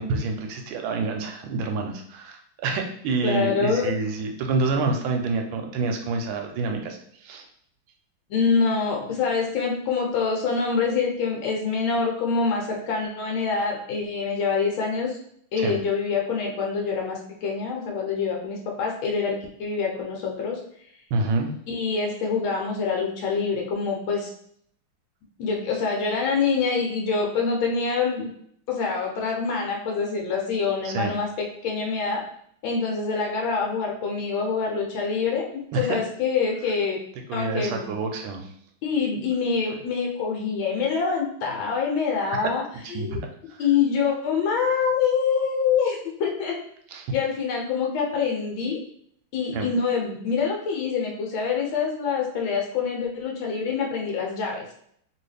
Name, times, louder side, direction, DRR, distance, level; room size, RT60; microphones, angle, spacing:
voice 1, 0.0-7.4 15.6-15.8 21.1-21.5 30.8-31.1 35.7-36.0 37.3-38.5 42.9-43.2 43.5-43.6 46.9-47.0 49.5-49.7, right 3 dB, 80° right, 3 dB, 1.3 m, -27 dB
voice 2, 3.2-3.9 8.3-15.2 15.5-20.6 21.7-24.3 25.4-28.3 28.7-32.2 32.6-37.0 37.3-37.9 38.8-42.6 42.9-43.2 43.6-46.6 47.1-48.8 49.3-54.6, left 5 dB, 75° left, 0 dB, 1.4 m, -25 dB
3.0 x 2.8 x 3.3 m, 0.67 s
omnidirectional pair, 2.2 m